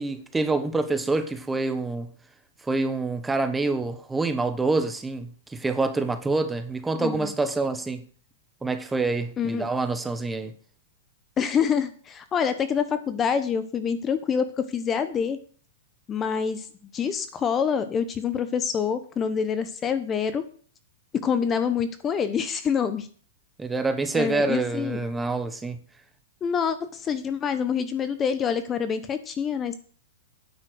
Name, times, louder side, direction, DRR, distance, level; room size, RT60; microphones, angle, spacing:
voice 1, 0.0-2.1 2.6-8.0 8.6-10.5 23.6-25.8, right 3 dB, 10° right, 1.0 m, -26 dB
voice 2, 6.9-7.3 9.4-9.7 11.4-15.4 16.1-16.7 16.9-20.4 21.2-23.1 24.1-25.0 26.4-29.7, left 7 dB, 20° left, 0.9 m, -26 dB
9.5 x 7.5 x 6.2 m
hypercardioid pair, 145°, 0 cm